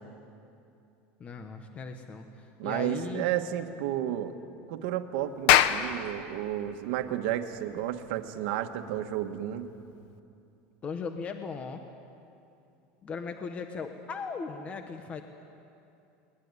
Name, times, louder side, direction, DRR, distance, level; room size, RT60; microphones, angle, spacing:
voice 1, 1.2-3.3 10.8-11.8 13.0-15.2, left 5 dB, 25° left, 6 dB, 1.2 m, -38 dB
voice 2, 2.6-4.4 4.7-9.7, right 11 dB, 70° right, 7 dB, 1.5 m, -32 dB
Clapping, 5.3-10.1, left 12 dB, 65° left, 1.0 m, -28 dB
21.5 x 20.0 x 9.8 m, 2.7 s
supercardioid pair, 150°, 5 cm